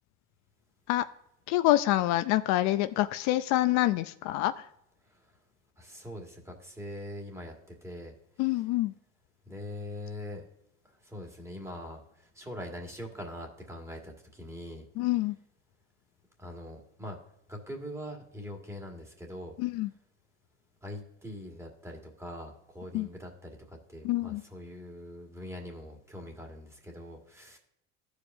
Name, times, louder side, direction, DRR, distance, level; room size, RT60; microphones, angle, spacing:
voice 1, 1.5-4.7 8.4-8.9 15.0-15.4 19.6-19.9 22.9-23.1 24.0-24.4, left 16 dB, 70° left, 12 dB, 0.5 m, -26 dB
voice 2, 5.8-8.1 9.5-10.4 10.8-14.9 16.4-17.2 17.5-19.5 20.8-27.6, left 1 dB, 10° right, 1 dB, 1.8 m, -42 dB
13.5 x 4.9 x 2.6 m, 0.79 s
cardioid pair, 115°, 29 cm